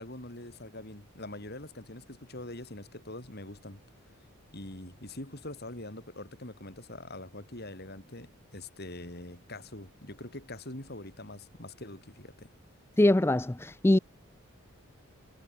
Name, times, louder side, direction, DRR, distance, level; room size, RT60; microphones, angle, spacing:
voice 1, 0.0-3.8 4.5-12.5, left 1 dB, 45° left, 4.6 m, -44 dB
voice 2, 13.0-14.0, left 1 dB, 10° left, 0.4 m, -23 dB
head